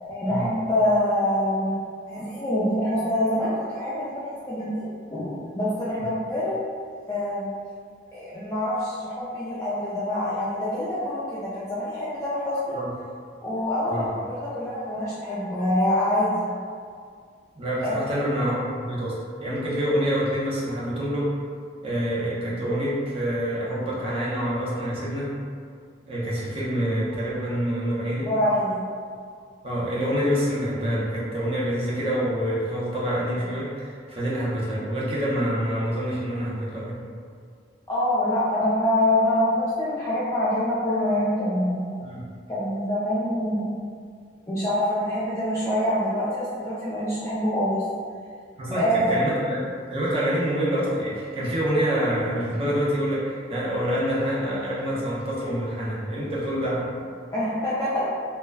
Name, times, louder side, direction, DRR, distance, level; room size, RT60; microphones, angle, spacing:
voice 1, 0.0-1.8 2.1-6.6 7.1-7.6 8.1-12.8 13.4-16.5 17.8-18.2 28.2-28.8 37.9-41.9 42.5-43.7 44.5-47.8 48.8-49.2 57.3-58.1, left 1 dB, 15° left, -11 dB, 0.4 m, -25 dB
voice 2, 17.6-21.3 21.8-25.4 26.1-28.3 29.6-37.0 42.0-42.2 48.6-49.6 49.9-56.9, equal, 30° right, -7 dB, 0.6 m, -26 dB
2.2 x 2.1 x 3.3 m, 2.2 s
head